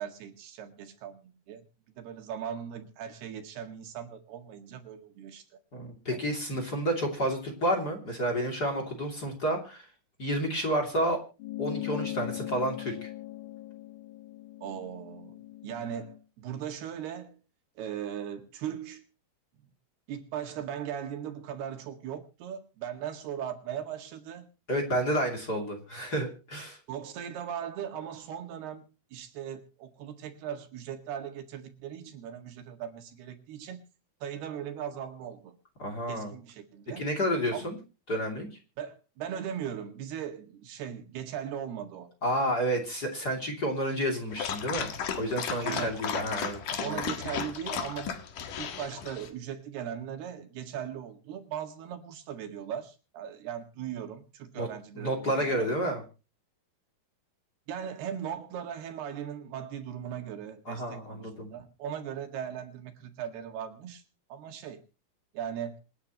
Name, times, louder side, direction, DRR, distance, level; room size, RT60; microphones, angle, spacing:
voice 1, 0.0-1.6 2.0-5.4 6.1-6.2 14.6-15.3 15.6-17.4 17.8-19.0 20.1-24.5 26.9-28.8 29.1-33.8 34.2-35.5 36.1-37.0 37.5-37.7 38.8-42.1 45.6-46.0 46.8-48.2 48.6-55.7 57.7-64.0 64.3-64.8 65.3-65.8, right 9 dB, 80° right, 6 dB, 3.9 m, -38 dB
voice 2, 5.7-9.9 10.2-11.2 11.6-13.1 24.7-26.8 35.8-36.3 37.0-37.8 38.1-38.5 42.2-47.0 54.6-54.7 54.9-56.0 60.7-61.5, equal, 30° left, 4 dB, 2.7 m, -30 dB
sound 1, 11.4-16.2, left 16 dB, 75° left, 2.5 m, -39 dB
Dog, 44.3-49.3, left 8 dB, 60° left, 3.1 m, -35 dB
26.5 x 9.7 x 3.0 m, 0.32 s
omnidirectional pair, 4.5 m